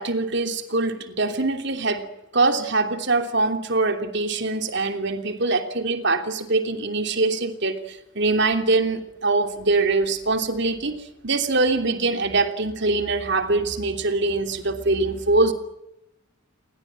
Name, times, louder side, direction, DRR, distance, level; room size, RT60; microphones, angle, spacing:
voice 1, 0.0-2.1 2.3-15.5, right 3 dB, 55° right, 7 dB, 3.1 m, -23 dB
29.5 x 23.0 x 7.7 m, 0.88 s
head